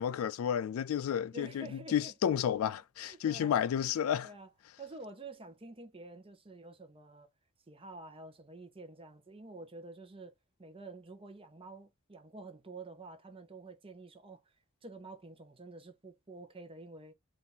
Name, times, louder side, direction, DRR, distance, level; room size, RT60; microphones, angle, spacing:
voice 1, 0.0-4.3, left 9 dB, 80° left, 0.3 m, -31 dB
voice 2, 1.3-2.1 3.0-3.7 4.2-4.5 4.8-7.3 7.7-10.3 10.6-14.4 14.8-17.1, right 2 dB, 25° right, 0.8 m, -49 dB
2.8 x 2.5 x 4.1 m
head